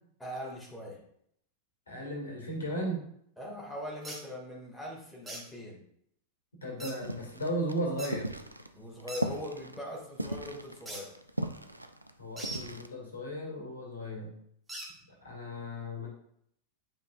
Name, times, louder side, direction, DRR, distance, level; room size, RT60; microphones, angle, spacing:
voice 1, 0.2-1.0 3.4-5.8 8.7-11.1, left 1 dB, 5° left, -4 dB, 2.3 m, -41 dB
voice 2, 1.9-3.0 6.6-8.3 12.2-14.3 15.2-16.1, equal, 70° left, -1 dB, 2.1 m, -35 dB
sound 1, 4.0-4.2 5.3-5.4 6.8-7.0 8.0-8.1 9.1-9.2 10.9-11.0 12.4-12.6 14.7-14.9, right 2 dB, 10° right, 1.8 m, -40 dB
sound 2, 7.0-12.9, right 1 dB, 85° right, 0.4 m, -38 dB
8.9 x 5.2 x 2.6 m, 0.70 s
figure-of-eight pair, 90°, 0 cm